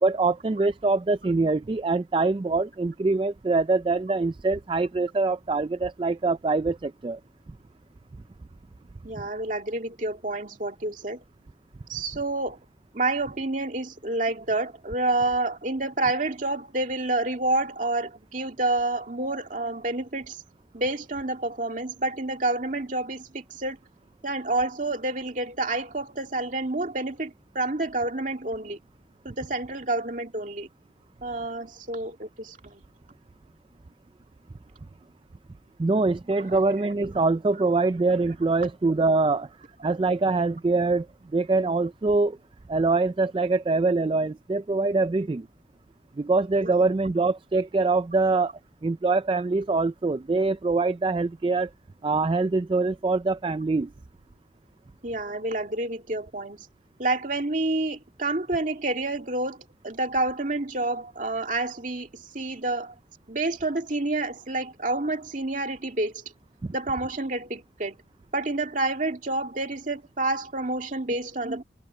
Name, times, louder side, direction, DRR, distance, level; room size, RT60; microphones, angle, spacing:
voice 1, 0.0-7.2 35.8-39.5 39.8-41.1 41.3-42.4 42.7-45.5 46.2-48.5 48.8-51.7 52.0-53.9 66.6-66.7, right 3 dB, 30° right, 0.3 m, -24 dB
voice 2, 9.0-11.2 11.9-12.6 12.9-20.4 20.7-23.8 24.2-28.8 29.2-30.7 31.2-32.8 36.5-36.6 46.6-46.7 55.0-56.7 57.0-59.6 59.8-62.9 63.3-66.2 66.7-68.0 68.3-71.6, right 2 dB, 45° right, 2.2 m, -29 dB
head